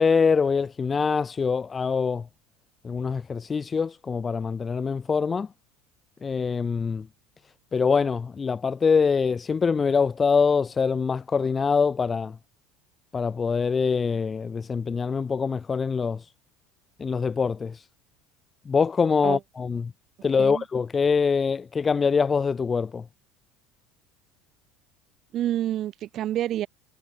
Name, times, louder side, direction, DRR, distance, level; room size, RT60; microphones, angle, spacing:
voice 1, 0.0-2.3 2.8-5.5 6.2-7.1 7.7-12.4 13.1-16.3 17.0-17.8 18.7-19.9 20.2-23.0, left 5 dB, 25° left, 0.5 m, -24 dB
voice 2, 25.3-26.7, right 12 dB, 50° right, 1.2 m, -28 dB
hypercardioid pair, 85°, 0 cm